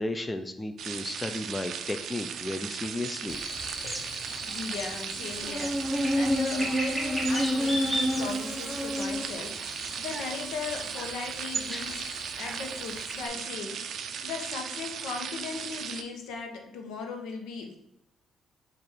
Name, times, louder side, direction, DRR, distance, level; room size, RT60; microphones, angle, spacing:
voice 1, 0.0-3.4, left 1 dB, 20° left, 7 dB, 0.4 m, -34 dB
sound 1, 0.8-16.0, right 7 dB, 70° right, 0.4 m, -37 dB
Buzz, 3.3-13.3, equal, ahead, 0.9 m, -31 dB
voice 2, 4.5-12.1 12.4-13.9 14.2-17.8, left 4 dB, 85° left, 3 dB, 0.8 m, -38 dB
4.3 x 2.5 x 4.8 m, 0.83 s
cardioid pair, 90°, 0 cm